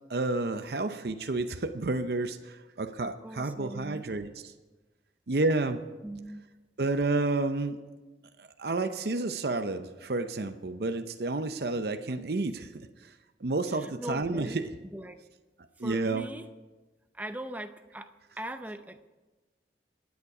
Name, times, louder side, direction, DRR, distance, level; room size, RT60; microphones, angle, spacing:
voice 1, 0.1-4.5 5.3-5.8 6.8-7.8 8.4-13.1 13.4-14.7 15.8-16.3, right 3 dB, 60° right, 8 dB, 0.6 m, -30 dB
voice 2, 3.2-4.0 6.0-6.4 13.7-14.6 14.9-15.2 15.8-16.5 17.1-19.1, right 1 dB, 10° right, 9 dB, 0.6 m, -40 dB
24.5 x 9.6 x 4.8 m, 1.2 s
head